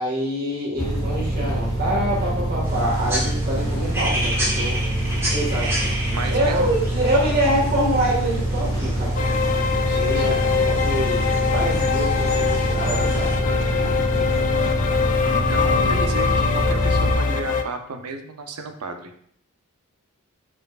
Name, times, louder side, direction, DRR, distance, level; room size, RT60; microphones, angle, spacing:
voice 1, 0.0-4.8 5.3-5.7 6.3-13.3, right 1 dB, 45° right, -3 dB, 1.7 m, -25 dB
sound 1, 0.8-17.1, right 1 dB, 15° left, 1.0 m, -25 dB
sound 2, 2.6-13.4, equal, 10° right, 1.1 m, -32 dB
voice 2, 6.1-6.7 9.9-10.4 13.3-14.8 15.3-19.1, right 3 dB, 85° right, 6 dB, 0.6 m, -34 dB
sound 3, 9.2-17.6, left 6 dB, 35° left, 0.3 m, -23 dB
5.0 x 4.4 x 2.4 m, 0.66 s
head